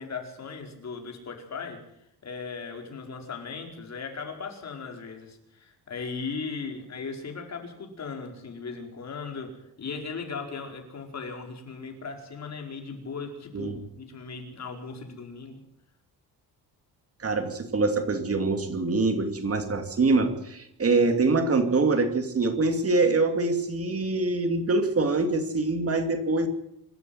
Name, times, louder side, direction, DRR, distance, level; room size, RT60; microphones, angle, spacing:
voice 1, 0.0-1.8 2.2-15.6, left 4 dB, 40° left, 3 dB, 4.9 m, -37 dB
voice 2, 17.2-26.5, right 3 dB, 35° right, 7 dB, 2.6 m, -24 dB
26.0 x 13.5 x 7.9 m, 0.77 s
cardioid pair, 125°, 39 cm